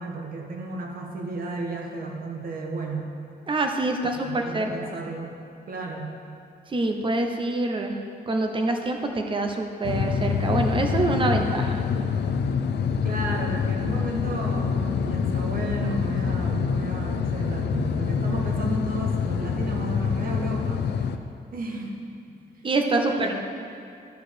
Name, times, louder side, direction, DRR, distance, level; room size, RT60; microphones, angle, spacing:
voice 1, 0.0-3.2 4.0-5.4 5.7-6.1 13.0-20.9 21.5-22.0 23.0-23.3, right 2 dB, 60° right, 1 dB, 1.3 m, -33 dB
voice 2, 3.5-4.7 6.7-8.0 8.3-11.8 22.6-23.3, right 2 dB, 30° right, 4 dB, 0.8 m, -25 dB
sound 1, 9.8-21.2, left 6 dB, 85° left, 0.5 m, -26 dB
11.0 x 4.8 x 6.8 m, 2.5 s
wide cardioid pair, 160°, 17 cm